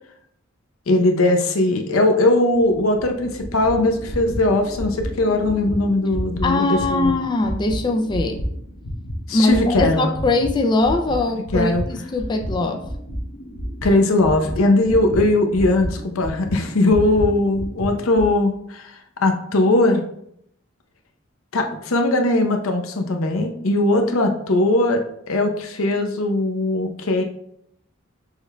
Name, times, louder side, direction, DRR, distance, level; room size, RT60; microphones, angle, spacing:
voice 1, 0.9-7.1 9.3-10.1 11.5-11.8 13.8-18.9 19.2-20.0 21.5-25.0 25.3-27.2, left 2 dB, 90° left, 4 dB, 0.6 m, -19 dB
sound 1, 2.5-10.5 10.8-18.3, equal, 65° left, 0.9 m, -31 dB
voice 2, 6.4-8.4 9.3-12.9, left 2 dB, 20° left, 4 dB, 0.3 m, -21 dB
6.3 x 3.4 x 2.2 m, 0.72 s
head